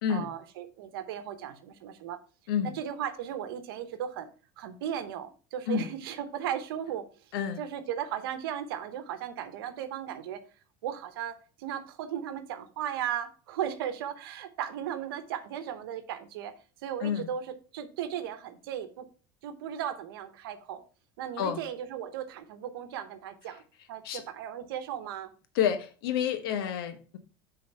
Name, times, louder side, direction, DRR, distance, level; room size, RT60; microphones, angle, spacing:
voice 1, 0.1-2.2 2.6-4.3 4.6-7.1 7.6-10.4 10.8-16.5 16.8-19.1 19.4-20.8 21.2-23.6 23.9-25.3 26.5-26.7, right 10 dB, 85° right, 1.0 m, -36 dB
voice 2, 25.5-27.2, left 8 dB, 85° left, 1.0 m, -29 dB
6.5 x 4.0 x 5.4 m
supercardioid pair, 100°, 12 cm